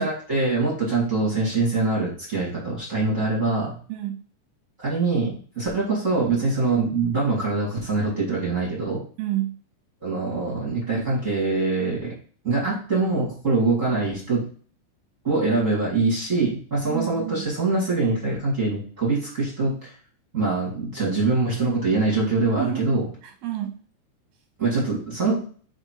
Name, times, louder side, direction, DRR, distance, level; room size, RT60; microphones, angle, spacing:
voice 1, 0.0-3.7 4.8-9.0 10.0-12.1 12.4-14.4 15.2-19.9 20.3-23.0 24.6-25.4, right 3 dB, 30° right, -5 dB, 1.6 m, -24 dB
voice 2, 3.9-4.2 9.2-9.6 16.9-17.5 22.6-22.9 23.2-23.8, right 13 dB, 75° right, 5 dB, 2.3 m, -29 dB
5.1 x 4.9 x 4.6 m, 0.43 s
omnidirectional pair, 4.9 m